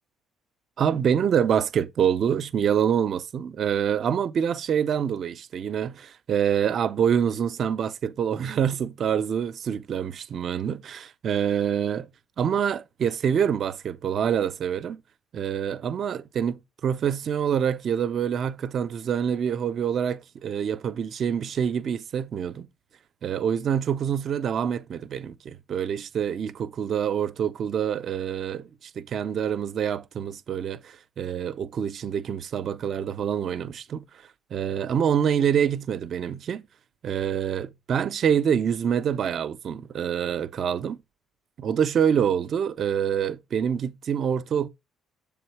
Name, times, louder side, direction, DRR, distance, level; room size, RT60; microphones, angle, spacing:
voice 1, 0.8-12.1 12.4-15.0 15.3-22.7 23.2-36.7 37.0-41.0 41.6-44.7, right 8 dB, 55° right, 0.5 m, -26 dB
7.0 x 3.5 x 4.6 m
supercardioid pair, 75°, 0 cm